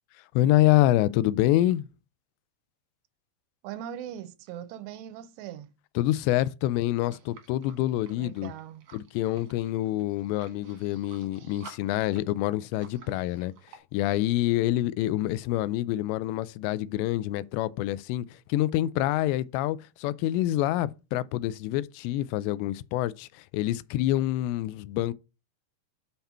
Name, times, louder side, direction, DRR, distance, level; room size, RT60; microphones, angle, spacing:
voice 1, 0.4-1.9 6.0-8.5 8.9-13.5 13.9-25.1, left 15 dB, 85° left, 2.7 m, -26 dB
voice 2, 3.6-5.7 8.2-8.9, right 10 dB, 85° right, 2.7 m, -40 dB
sound 1, 7.0-13.8, right 6 dB, 60° right, 1.9 m, -53 dB
6.9 x 5.8 x 4.3 m
omnidirectional pair, 5.0 m